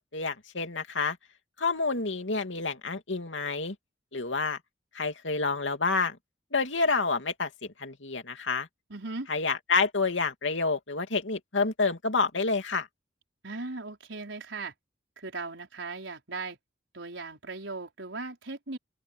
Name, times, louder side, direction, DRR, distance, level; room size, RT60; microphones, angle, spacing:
voice 1, 0.1-1.2 1.6-3.7 4.1-4.6 4.9-6.2 6.5-8.7 9.3-12.9, left 4 dB, 85° left, 2.6 m, -28 dB
voice 2, 8.9-9.3 13.4-14.7 15.2-16.6 16.9-18.8, right 3 dB, 85° right, 4.7 m, -38 dB
open air
head